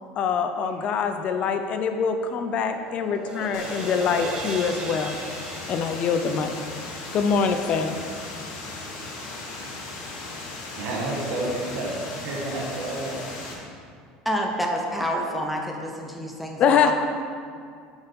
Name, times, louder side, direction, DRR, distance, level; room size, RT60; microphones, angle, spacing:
voice 1, 0.2-5.2 5.7-6.6 7.1-8.0 16.6-16.9, left 6 dB, 45° left, 7 dB, 0.5 m, -24 dB
sound 1, 1.7-8.0, right 2 dB, 30° right, 1.0 m, -38 dB
sound 2, 3.5-13.5, left 2 dB, 80° left, 1.6 m, -37 dB
voice 2, 10.7-13.2, right 2 dB, 70° right, -3 dB, 1.4 m, -30 dB
voice 3, 14.2-16.9, equal, 5° right, 0 dB, 0.7 m, -28 dB
7.8 x 4.4 x 5.3 m, 2.2 s
supercardioid pair, 120°, 3 cm